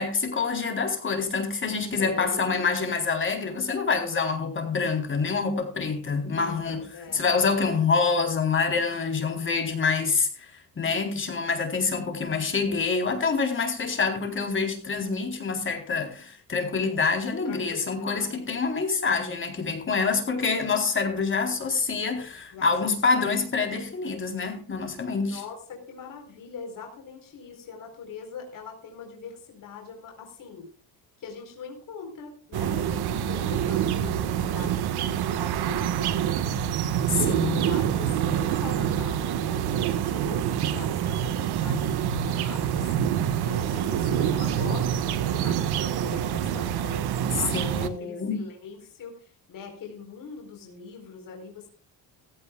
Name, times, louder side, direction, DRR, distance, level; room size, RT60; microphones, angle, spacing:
voice 1, 0.0-6.8 7.1-10.5 10.8-25.4 37.1-37.8 47.5-48.5, left 4 dB, 30° left, 4.1 m, -26 dB
voice 2, 2.0-2.6 6.4-7.9 13.8-14.3 17.4-18.6 22.5-23.3 25.3-30.7 31.2-36.7 37.1-43.0 43.4-51.7, left 5 dB, 50° left, 4.4 m, -42 dB
sound 1, 32.5-47.9, right 9 dB, 65° right, 1.7 m, -26 dB
16.5 x 16.5 x 2.4 m
cardioid pair, 140°, 42 cm